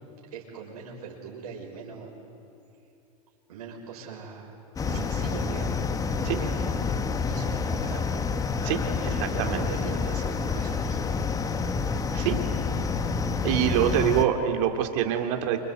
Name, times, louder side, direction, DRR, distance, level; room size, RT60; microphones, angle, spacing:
voice 1, 0.3-2.1 3.5-4.5 4.8-5.7 6.2-8.3 9.0-11.0, right 5 dB, 75° right, -2 dB, 5.9 m, -41 dB
sound 1, 4.8-14.3, left 5 dB, 20° left, 1.2 m, -28 dB
voice 2, 8.6-9.7 12.1-12.4 13.4-15.6, right 10 dB, 55° right, 5 dB, 3.1 m, -26 dB
28.0 x 26.0 x 8.1 m, 2.7 s
hypercardioid pair, 120°, 19 cm